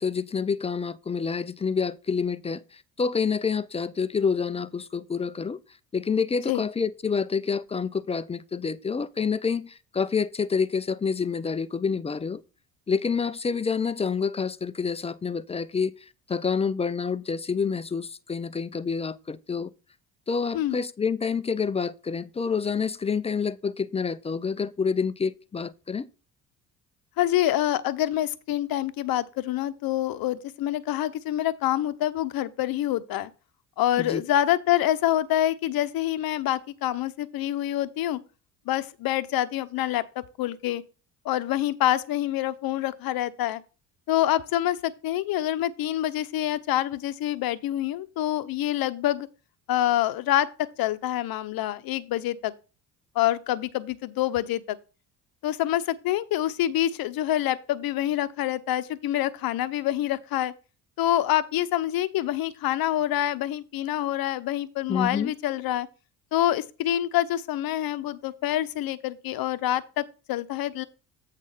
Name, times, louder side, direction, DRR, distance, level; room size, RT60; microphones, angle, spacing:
voice 1, 0.0-5.6 5.9-12.4 12.9-15.9 16.3-19.7 20.3-26.1 34.0-34.2 64.9-65.3, left 5 dB, 15° left, 0.4 m, -28 dB
voice 2, 27.2-33.3 33.8-38.2 38.7-40.8 41.2-43.6 44.1-49.3 49.7-52.5 53.1-54.8 55.4-60.5 61.0-65.9 66.3-70.8, left 13 dB, 55° left, 0.8 m, -26 dB
8.2 x 3.7 x 5.6 m
hypercardioid pair, 55°, 42 cm